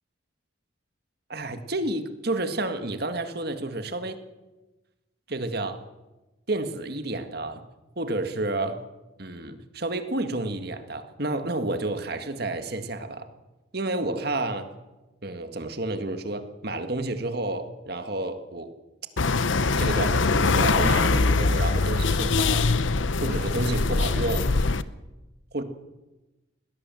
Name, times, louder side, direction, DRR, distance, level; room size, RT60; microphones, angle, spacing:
voice 1, 1.3-4.2 5.3-5.8 6.5-7.6 8.0-8.8 9.2-13.3 13.7-14.7 15.2-18.7 19.8-22.7 23.2-24.5 25.5-25.6, right 2 dB, 50° right, 8 dB, 1.8 m, -30 dB
sound 1, 19.2-24.8, left 3 dB, 70° left, 0.8 m, -23 dB
21.5 x 17.5 x 7.7 m, 1.1 s
head